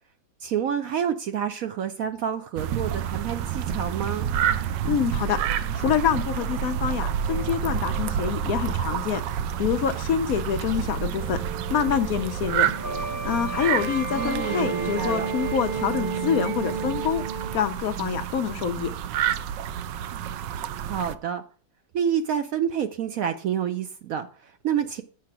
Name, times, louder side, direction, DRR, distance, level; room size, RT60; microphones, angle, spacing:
voice 1, 0.4-4.3 14.1-15.3 20.8-21.4 21.9-25.0, right 8 dB, 70° right, 0.9 m, -28 dB
sound 1, 2.6-21.1, right 9 dB, 85° right, 1.3 m, -29 dB
sound 2, 3.7-10.9 11.1-17.6, right 3 dB, 35° right, 0.9 m, -35 dB
voice 2, 4.8-9.2 9.6-11.4 11.7-12.7 13.2-17.2 17.5-18.9, left 8 dB, 65° left, 1.0 m, -26 dB
8.5 x 4.9 x 6.0 m
omnidirectional pair, 1.9 m